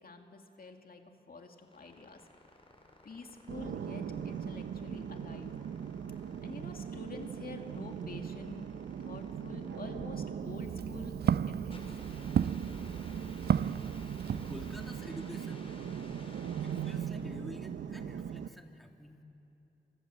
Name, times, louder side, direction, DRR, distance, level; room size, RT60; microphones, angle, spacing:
voice 1, 0.0-2.3 3.0-5.5 6.4-8.6 9.0-11.8, left 3 dB, 55° left, 4 dB, 2.4 m, -48 dB
sound 1, 1.4-17.3, left 1 dB, 30° left, 5.2 m, -56 dB
sound 2, 3.5-18.5, right 8 dB, 85° right, 0.9 m, -40 dB
Walk footsteps, 10.4-15.0, right 8 dB, 60° right, 0.5 m, -33 dB
voice 2, 14.3-15.7 16.6-19.2, equal, ahead, 3 dB, 2.5 m, -48 dB
26.0 x 24.5 x 7.8 m, 2.9 s
cardioid pair, 55°, 19 cm